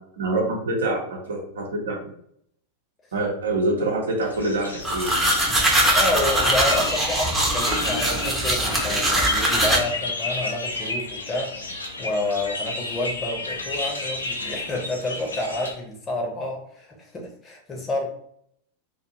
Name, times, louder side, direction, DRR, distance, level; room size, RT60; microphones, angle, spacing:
voice 1, 0.2-1.0 1.3-2.1 3.1-5.2, right 2 dB, 65° right, -1 dB, 0.7 m, -25 dB
sound 1, 4.2-15.7, left 2 dB, 75° left, 0.5 m, -32 dB
sound 2, 4.8-9.8, right 1 dB, 10° right, 0.7 m, -21 dB
voice 2, 5.5-18.1, left 2 dB, 20° left, 1 dB, 0.7 m, -29 dB
2.5 x 2.3 x 2.8 m, 0.67 s
figure-of-eight pair, 90°, 0 cm